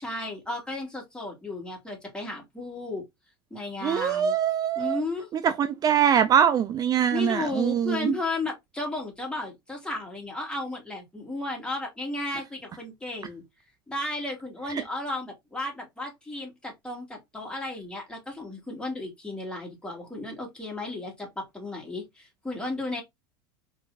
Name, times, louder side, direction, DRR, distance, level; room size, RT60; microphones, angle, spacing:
voice 1, 0.0-3.0 3.5-4.4 4.8-5.3 7.1-13.4 13.9-23.0, left 2 dB, 5° left, 2.7 m, -34 dB
voice 2, 3.8-5.0 5.4-8.2 14.7-14.8, right 8 dB, 30° right, 0.4 m, -23 dB
4.5 x 3.9 x 2.7 m
hypercardioid pair, 85°, 12 cm